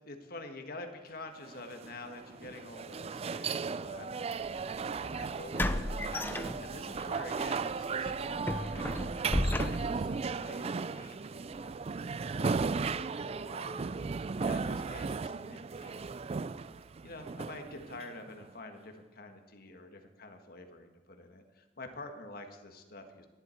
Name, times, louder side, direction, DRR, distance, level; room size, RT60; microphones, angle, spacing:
voice 1, 0.1-11.9 12.3-13.9 14.4-16.1 17.0-23.3, left 2 dB, 55° left, 5 dB, 1.6 m, -48 dB
sound 1, 1.5-18.5, right 4 dB, 35° right, 0.3 m, -36 dB
sound 2, 4.5-4.6 5.6-7.0 7.4-7.6 8.1-10.2, left 1 dB, 10° left, 0.6 m, -33 dB
19.5 x 11.0 x 4.5 m, 1.2 s
head